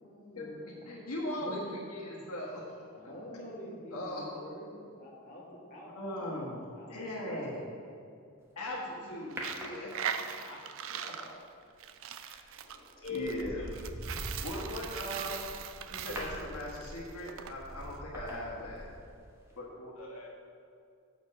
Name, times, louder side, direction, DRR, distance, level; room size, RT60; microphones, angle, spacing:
voice 1, 0.0-0.9 1.5-1.7 2.1-2.3 2.9-5.4 5.7-7.0 7.2-7.5 8.9-9.2, equal, 35° left, -7 dB, 1.8 m, -48 dB
voice 2, 0.9-1.6 1.9-2.8 3.6-4.2 5.9-7.7 8.5-10.6 10.9-11.4 12.2-12.6 13.1-13.6 14.4-15.4 15.9-18.9 19.6-19.9, left 1 dB, 85° left, -5 dB, 1.4 m, -39 dB
Coin (dropping), 9.3-17.5, right 8 dB, 60° right, 0.4 m, -40 dB
sound 1, 9.4-10.4 12.3-12.5 13.0-19.2 19.5-19.6, equal, 10° right, 0.9 m, -44 dB
voice 3, 12.5-13.3 13.6-14.4 20.0-20.3, left 6 dB, 65° left, -5 dB, 1.8 m, -43 dB
7.1 x 4.4 x 6.4 m, 2.4 s
head